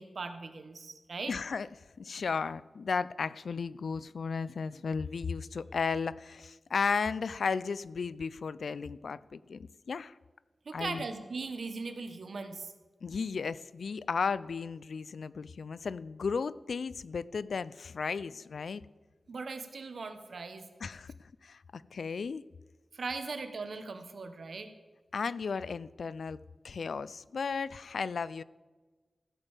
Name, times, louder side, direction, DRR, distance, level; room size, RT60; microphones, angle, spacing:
voice 1, 0.0-1.3 10.6-12.7 19.3-20.7 22.9-24.7, right 4 dB, 70° right, 8 dB, 1.2 m, -39 dB
voice 2, 1.3-1.7 2.0-10.2 10.7-11.0 13.0-18.8 20.8-22.4 25.1-26.4 26.6-28.4, left 5 dB, 80° left, 18 dB, 0.3 m, -34 dB
15.5 x 5.4 x 7.2 m, 1.3 s
wide cardioid pair, 105°, 0 cm